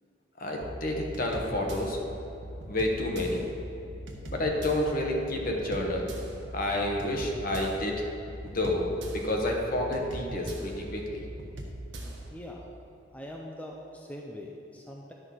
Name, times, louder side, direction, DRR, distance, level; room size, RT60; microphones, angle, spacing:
voice 1, 0.4-2.0 2.7-3.4 4.2-6.1 6.5-8.1 8.5-11.2, left 1 dB, 50° left, 0 dB, 1.2 m, -29 dB
sound 1, 0.6-12.3, right 1 dB, 80° right, 1.1 m, -41 dB
voice 2, 12.3-12.7 13.1-15.1, left 1 dB, 10° left, -1 dB, 0.5 m, -42 dB
11.0 x 6.3 x 4.0 m, 2.8 s
head